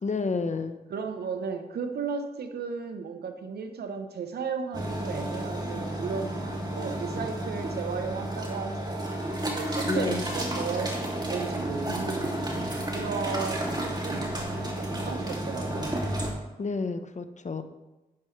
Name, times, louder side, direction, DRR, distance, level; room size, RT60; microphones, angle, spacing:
voice 1, 0.0-0.8 9.9-10.3 16.6-17.6, left 4 dB, 50° left, 9 dB, 1.0 m, -30 dB
voice 2, 0.9-6.3 6.7-15.9, right 5 dB, 85° right, 7 dB, 0.9 m, -35 dB
sound 1, 4.7-16.3, right 1 dB, 25° right, 2.6 m, -32 dB
10.5 x 9.2 x 3.3 m, 1.0 s
cardioid pair, 45°, 16 cm